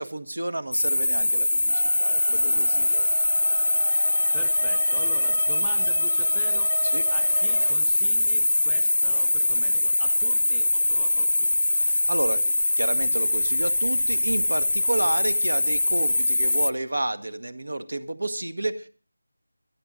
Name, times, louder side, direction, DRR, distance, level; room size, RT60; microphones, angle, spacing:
voice 1, 0.0-3.1 6.9-7.0 11.7-18.9, right 2 dB, 80° right, 10 dB, 1.9 m, -31 dB
sound 1, 0.7-16.7, left 2 dB, 75° left, 0.6 m, -23 dB
sound 2, 1.7-7.7, right 3 dB, 40° right, 2.6 m, -38 dB
voice 2, 3.9-6.8 7.1-11.6, right 2 dB, 5° right, 6 dB, 0.9 m, -44 dB
26.0 x 9.1 x 4.0 m, 0.39 s
figure-of-eight pair, 175°, 0 cm